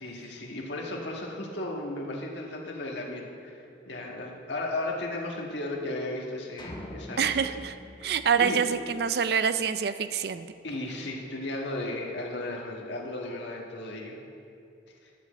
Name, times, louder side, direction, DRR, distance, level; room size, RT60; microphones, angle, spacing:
voice 1, 0.0-7.4 8.4-8.6 10.6-14.2 15.0-15.1, left 2 dB, 80° left, -1 dB, 1.5 m, -35 dB
sound 1, 6.6-9.0, left 1 dB, 25° left, 1.2 m, -43 dB
voice 2, 7.2-7.8 8.0-10.5, right 7 dB, 60° right, 12 dB, 0.4 m, -26 dB
11.0 x 5.1 x 7.8 m, 2.5 s
head